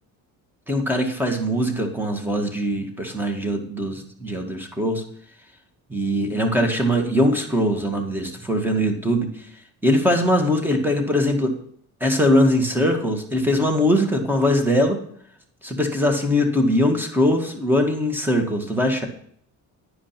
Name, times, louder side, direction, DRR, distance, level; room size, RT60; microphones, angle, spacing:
voice 1, 0.7-5.0 5.9-9.5 9.8-11.5 12.0-15.0 15.6-19.1, equal, 5° right, 3 dB, 1.9 m, -21 dB
10.0 x 5.0 x 5.9 m, 0.65 s
cardioid pair, 95°, 39 cm